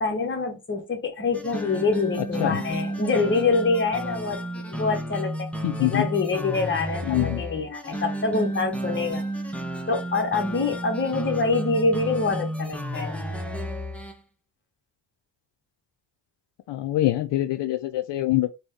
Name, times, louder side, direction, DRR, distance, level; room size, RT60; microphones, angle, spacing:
voice 1, 0.0-5.5 5.8-9.2 9.9-13.2, left 3 dB, 30° left, 0.9 m, -25 dB
sound 1, 1.3-14.2, right 1 dB, 5° left, 0.5 m, -32 dB
voice 2, 5.6-6.1 7.1-7.4 16.7-18.5, left 15 dB, 75° left, 0.5 m, -24 dB
4.0 x 2.1 x 3.6 m
cardioid pair, 90°, 42 cm